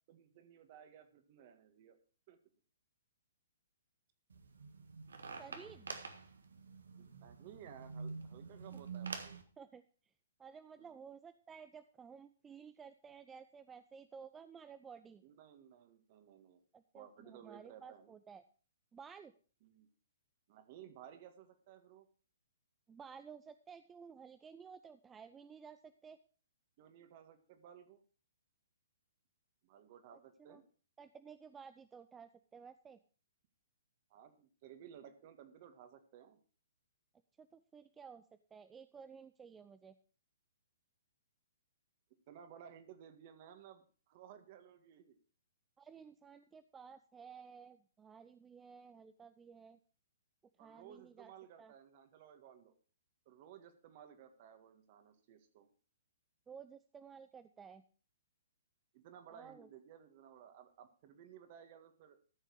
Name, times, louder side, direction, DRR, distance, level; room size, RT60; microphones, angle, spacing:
voice 1, 0.1-2.0 2.3-2.4 6.9-9.4 10.8-11.0 15.2-16.6 16.9-18.1 19.6-19.9 20.5-22.1 26.8-28.0 29.6-30.6 34.1-36.4 42.3-45.2 50.6-52.8 53.3-55.7 58.9-62.2, right 9 dB, 40° right, 7 dB, 1.8 m, -57 dB
sound 1, 4.3-9.4, right 4 dB, 80° right, 1.6 m, -47 dB
voice 2, 5.4-5.9 8.7-8.8 9.6-9.8 10.4-15.2 16.7-18.4 18.9-19.3 22.9-26.2 30.1-30.6 31.0-33.0 37.4-38.2 38.5-40.0 45.8-49.8 50.6-51.3 51.6-51.7 56.5-57.8 59.3-59.7, right 6 dB, 15° right, 11 dB, 0.5 m, -54 dB
14.0 x 6.5 x 4.8 m, 0.39 s
hypercardioid pair, 130°, 0 cm